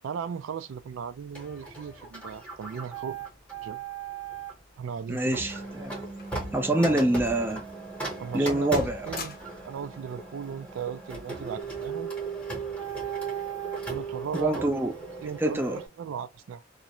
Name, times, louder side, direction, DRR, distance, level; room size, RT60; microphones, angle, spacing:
voice 1, 0.0-3.2 3.6-3.8 4.8-5.4 6.7-7.0 8.2-9.4 9.6-12.1 13.9-14.7 15.2-16.6, right 7 dB, 80° right, 0.3 m, -37 dB
Printer, 1.3-4.6 5.3-15.9, right 4 dB, 5° left, 0.9 m, -37 dB
sound 1, 4.5-6.5 6.8-7.0 7.6-7.8 8.2-8.5 8.7-9.8 10.8-11.1, left 5 dB, 50° left, 0.6 m, -45 dB
voice 2, 5.1-6.0 6.5-7.6 8.3-9.1 14.3-14.9 15.4-15.8, right 1 dB, 10° right, 0.4 m, -25 dB
Bass guitar, 5.4-11.6, right 2 dB, 45° right, 0.7 m, -46 dB
2.4 x 2.1 x 2.8 m
head